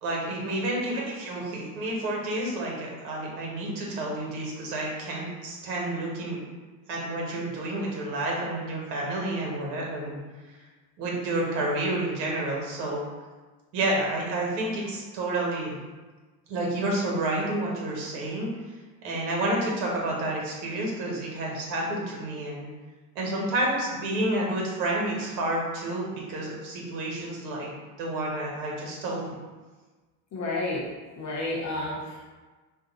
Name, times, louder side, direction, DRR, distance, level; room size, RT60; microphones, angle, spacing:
voice 1, 0.0-6.5 6.9-10.2 11.0-13.0 13.7-15.8 16.5-18.5 19.0-22.7 23.1-27.7 28.0-29.2, right 1 dB, 80° right, -2 dB, 1.1 m, -30 dB
voice 2, 30.3-30.8 31.2-32.3, left 2 dB, 35° left, -3 dB, 0.8 m, -31 dB
2.6 x 2.2 x 3.9 m, 1.3 s
supercardioid pair, 115°, 49 cm